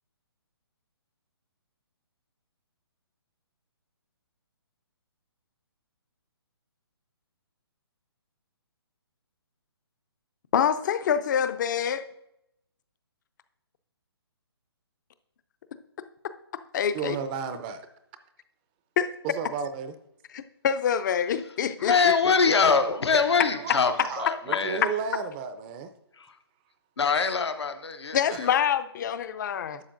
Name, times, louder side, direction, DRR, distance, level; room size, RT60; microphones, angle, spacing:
voice 1, 10.5-12.0 16.7-17.2 19.0-19.1 20.3-21.9 28.1-29.8, left 8 dB, 45° left, 0.5 m, -26 dB
voice 2, 16.9-17.9 19.2-19.9 23.5-23.7 24.0-25.9 28.3-28.5, right 6 dB, 20° right, 0.4 m, -33 dB
voice 3, 21.8-24.8 26.2-26.4 27.0-28.6, left 5 dB, 85° left, 0.8 m, -24 dB
11.5 x 7.0 x 2.5 m
hypercardioid pair, 145°, 14 cm